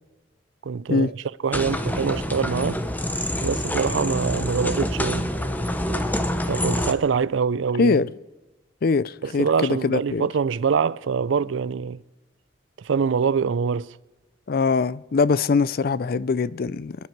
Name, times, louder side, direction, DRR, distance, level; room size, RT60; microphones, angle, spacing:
voice 1, 0.6-2.8 3.4-5.3 6.5-8.0 9.2-12.0 12.8-14.0, right 6 dB, 85° right, 0.5 m, -24 dB
sound 1, 1.5-6.9, left 1 dB, 10° left, 0.9 m, -26 dB
voice 2, 7.8-8.1 8.8-10.3 14.5-17.0, left 4 dB, 55° left, 0.4 m, -22 dB
27.0 x 10.5 x 4.6 m
head